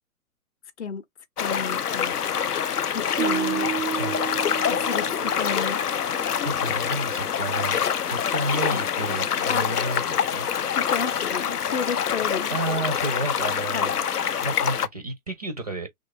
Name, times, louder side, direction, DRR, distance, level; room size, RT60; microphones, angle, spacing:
sound 1, 1.4-14.9, left 8 dB, 90° left, 0.5 m, -26 dB
voice 1, 1.4-2.4 2.9-3.7 4.7-5.8 8.7-8.8 9.5-9.7 10.8-12.9 13.7-13.9, left 6 dB, 50° left, 0.7 m, -32 dB
sound 2, 3.2-6.3, right 9 dB, 90° right, 0.6 m, -31 dB
voice 2, 6.4-7.8 8.1-10.5 12.5-14.0 14.4-15.9, right 2 dB, 30° right, 0.4 m, -31 dB
3.1 x 2.4 x 3.8 m
figure-of-eight pair, 125°, 45 cm